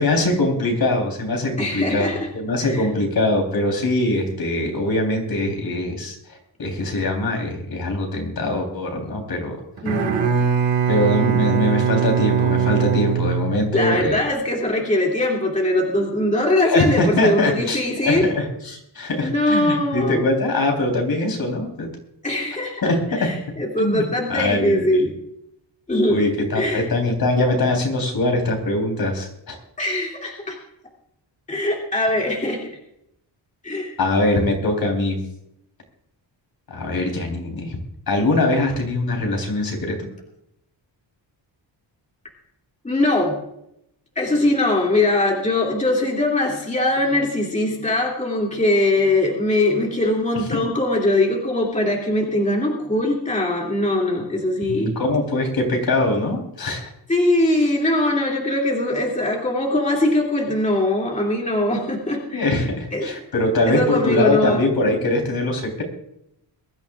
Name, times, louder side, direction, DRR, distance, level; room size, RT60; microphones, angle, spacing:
voice 1, 0.0-6.2 6.6-9.6 10.9-14.2 16.6-21.9 22.8-23.3 23.8-24.0 24.3-25.0 26.1-29.6 34.0-35.2 36.7-37.8 38.1-40.1 54.7-56.9 62.3-65.8, left 2 dB, 55° left, 2 dB, 3.8 m, -22 dB
voice 2, 1.6-2.3 2.6-2.9 9.8-10.3 13.7-18.3 19.2-20.2 22.2-25.1 25.9-26.3 26.5-26.9 29.8-30.6 31.5-32.7 33.6-33.9 42.8-43.4 44.2-55.0 57.1-62.6 62.9-63.1 63.7-64.6, left 1 dB, 15° left, -2 dB, 2.6 m, -21 dB
Bowed string instrument, 9.8-14.1, right 7 dB, 85° right, 2.0 m, -21 dB
23.0 x 13.0 x 2.5 m, 0.79 s
wide cardioid pair, 155°, 44 cm